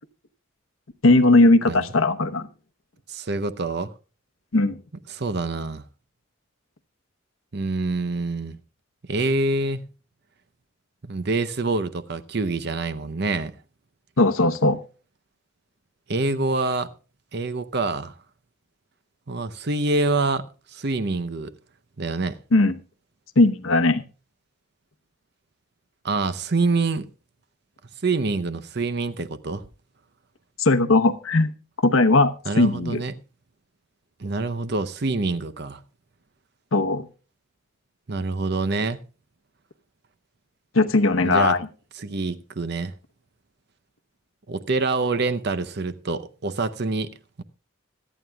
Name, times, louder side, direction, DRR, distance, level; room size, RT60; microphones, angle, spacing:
voice 1, 1.0-2.5 4.5-4.8 14.2-14.8 22.5-22.7 23.4-24.0 30.6-31.5 31.8-33.0 36.7-37.0 40.7-41.6, left 2 dB, 75° left, 1.0 m, -18 dB
voice 2, 3.1-3.9 5.1-5.8 7.5-8.6 9.1-9.9 11.0-13.5 16.1-16.9 17.3-18.1 19.3-21.5 22.0-22.4 26.0-27.1 28.0-29.6 32.4-33.1 34.2-35.8 38.1-39.0 41.2-41.6 41.9-42.9 44.5-47.4, right 3 dB, 50° right, 0.7 m, -26 dB
25.0 x 9.2 x 2.3 m
head